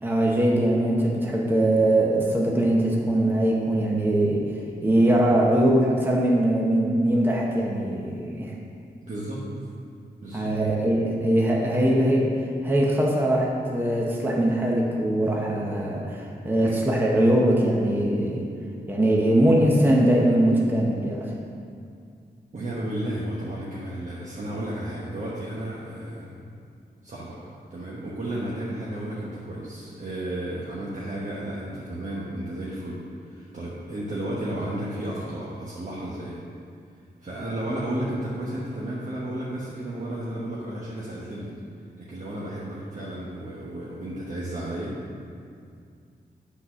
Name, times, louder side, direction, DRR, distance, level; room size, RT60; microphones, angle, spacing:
voice 1, 0.0-4.5 4.8-8.5 10.3-12.3 12.6-18.5 18.9-21.3, right 1 dB, 10° right, -2 dB, 0.9 m, -21 dB
voice 2, 9.0-9.4 10.2-10.5 16.6-16.8 22.5-26.4 27.0-27.4 27.7-36.4 37.2-41.5 42.0-45.0, right 1 dB, 45° right, -7 dB, 1.1 m, -33 dB
8.6 x 4.1 x 6.2 m, 2.3 s
wide cardioid pair, 125°, 18 cm